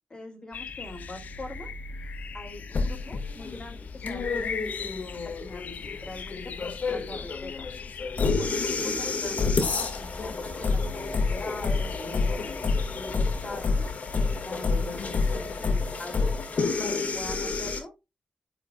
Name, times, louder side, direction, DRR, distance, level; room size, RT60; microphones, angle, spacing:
voice 1, 0.1-1.7 2.0-7.7 8.3-15.0 15.3-16.3 16.8-17.9, left 2 dB, 30° left, 3 dB, 3.1 m, -43 dB
sound 1, 0.5-15.8, left 5 dB, 85° left, 0.7 m, -40 dB
sound 2, 2.7-17.8, left 4 dB, 65° left, 2.0 m, -29 dB
10.0 x 4.9 x 2.4 m, 0.24 s
wide cardioid pair, 100°, 3 cm